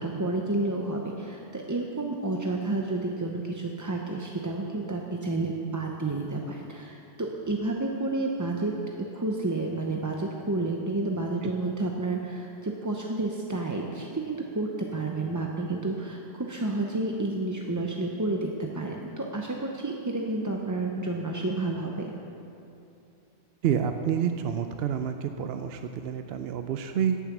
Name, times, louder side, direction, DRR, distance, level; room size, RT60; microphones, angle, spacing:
voice 1, 0.0-8.7 9.0-22.1, right 2 dB, 20° right, 0 dB, 0.6 m, -30 dB
voice 2, 23.6-27.2, right 8 dB, 65° right, 7 dB, 0.7 m, -28 dB
17.0 x 7.3 x 6.0 m, 2.7 s
omnidirectional pair, 1.3 m